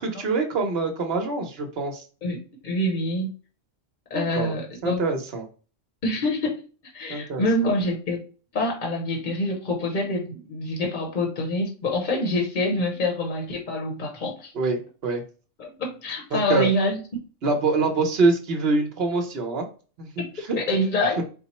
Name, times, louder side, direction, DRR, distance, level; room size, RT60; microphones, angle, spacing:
voice 1, 0.0-2.0 4.1-4.5 4.8-5.5 7.1-7.5 14.5-15.2 16.3-16.7 17.4-19.7 20.0-20.6, right 3 dB, 55° right, 3 dB, 1.0 m, -25 dB
voice 2, 2.2-3.3 4.1-5.0 6.0-6.6 6.9-8.2 8.5-14.5 15.6-17.0 20.2-21.2, left 1 dB, 45° left, 1 dB, 0.9 m, -26 dB
4.4 x 2.0 x 4.1 m, 0.37 s
omnidirectional pair, 1.3 m